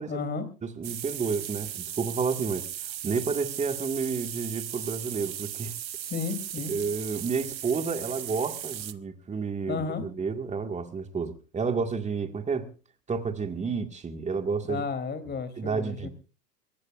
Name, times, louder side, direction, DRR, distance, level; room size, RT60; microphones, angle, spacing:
voice 1, 0.1-0.5 6.0-6.7 9.7-10.0 14.6-16.1, left 5 dB, 20° left, 3.1 m, -33 dB
voice 2, 0.6-2.7 3.0-5.7 6.7-12.7 13.1-14.8 15.6-16.1, right 5 dB, 15° right, 1.9 m, -30 dB
sound 1, 0.8-8.9, right 11 dB, 85° right, 0.9 m, -37 dB
22.5 x 19.0 x 2.5 m
hypercardioid pair, 100°, 50 cm